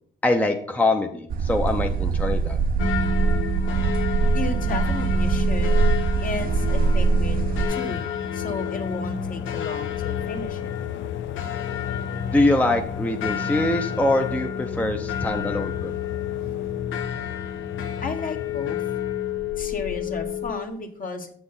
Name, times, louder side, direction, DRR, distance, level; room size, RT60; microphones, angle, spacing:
voice 1, 0.2-2.6 12.3-15.9, left 2 dB, 5° left, 4 dB, 0.6 m, -23 dB
sound 1, 1.3-7.7, right 4 dB, 45° right, 0.6 m, -22 dB
sound 2, 2.8-20.7, left 7 dB, 90° left, 0.9 m, -30 dB
voice 2, 4.3-5.8 6.2-8.1 8.3-10.7 18.0-18.8 19.6-21.3, left 3 dB, 45° left, 5 dB, 1.2 m, -33 dB
sound 3, 6.5-19.6, left 8 dB, 70° left, 0.5 m, -34 dB
7.6 x 6.1 x 3.8 m, 0.62 s
cardioid pair, 90°, 20 cm